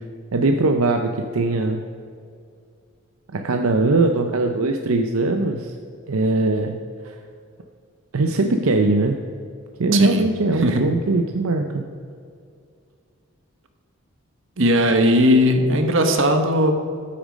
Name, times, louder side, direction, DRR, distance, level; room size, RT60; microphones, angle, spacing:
voice 1, 0.3-1.8 3.3-5.7 6.1-6.8 7.0-7.2 8.1-9.2 9.8-11.8, right 2 dB, 85° right, 5 dB, 0.7 m, -20 dB
voice 2, 9.9-10.2 10.6-10.8 14.6-16.7, equal, 65° right, 6 dB, 1.2 m, -17 dB
13.5 x 8.6 x 5.2 m, 2.3 s
head